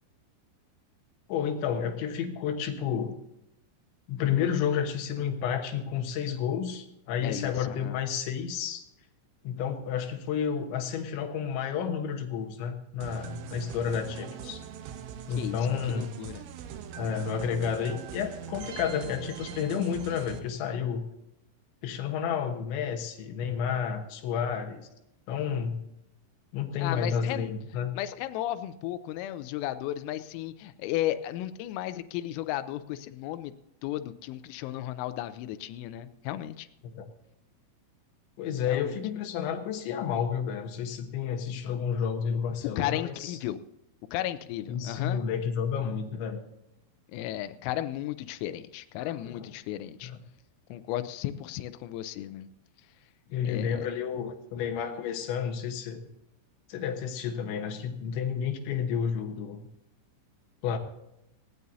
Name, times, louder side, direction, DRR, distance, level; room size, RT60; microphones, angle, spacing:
voice 1, 1.3-3.2 4.1-8.8 9.4-14.6 15.3-16.1 17.0-21.1 21.8-24.9 25.3-25.9 26.5-27.9 36.8-37.1 38.4-43.4 44.7-46.4 49.2-49.5 50.0-50.2 53.3-56.1 56.7-59.7 60.6-60.8, left 7 dB, 70° left, 5 dB, 3.3 m, -31 dB
voice 2, 7.2-8.0 15.4-16.4 26.8-27.5 28.0-33.5 33.8-36.7 38.7-39.0 42.8-43.6 44.1-45.2 47.1-50.1 50.7-52.5 53.4-53.9, left 13 dB, 90° left, 11 dB, 3.3 m, -34 dB
sound 1, 13.0-20.4, right 8 dB, 75° right, 3.4 m, -42 dB
19.0 x 16.5 x 2.7 m, 0.84 s
omnidirectional pair, 5.8 m